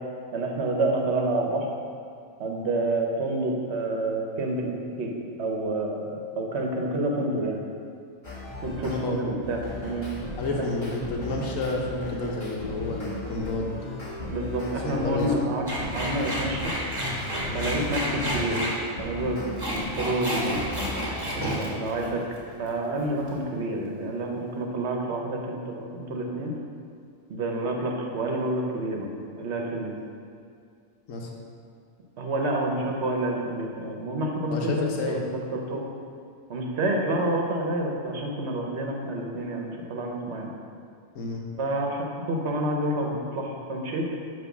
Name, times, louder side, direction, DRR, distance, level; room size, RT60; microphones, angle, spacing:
voice 1, 0.3-1.7 2.4-5.1 5.4-6.1 6.4-7.6 8.6-10.1 10.5-10.7 14.3-16.7 17.5-18.6 19.0-19.4 19.7-20.6 21.4-22.2 22.6-26.5 27.3-29.1 29.3-29.9 32.2-35.8 36.5-40.5 41.6-44.1, right 1 dB, 55° right, 1 dB, 1.1 m, -28 dB
sound 1, 8.2-9.0 9.4-15.4 15.8-21.4, left 2 dB, 35° left, 1.5 m, -37 dB
voice 2, 8.8-9.2 10.4-13.7 14.8-15.3 17.5-17.7 31.1-31.3 34.5-35.2 41.1-41.4, left 2 dB, 70° left, 0 dB, 1.3 m, -30 dB
sound 2, 15.7-18.7 19.4-22.7 23.0-23.4, right 1 dB, 20° right, 1.3 m, -30 dB
9.1 x 3.1 x 6.0 m, 2.3 s
omnidirectional pair, 1.4 m